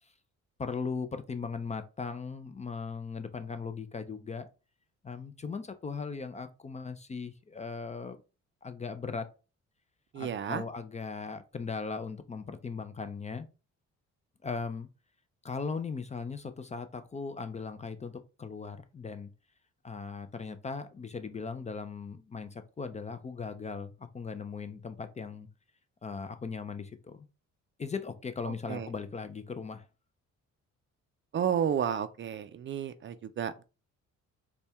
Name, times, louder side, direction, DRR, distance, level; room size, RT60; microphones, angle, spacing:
voice 1, 0.6-4.5 5.0-8.2 8.6-9.3 10.1-13.5 14.4-14.9 15.4-18.1 18.4-19.3 19.8-25.5 26.0-27.3 27.8-29.9, left 5 dB, 25° left, 0.4 m, -38 dB
voice 2, 10.1-10.6 28.7-28.9 31.3-33.6, right 8 dB, 40° right, 0.4 m, -31 dB
4.2 x 2.3 x 3.3 m
cardioid pair, 90°, 30 cm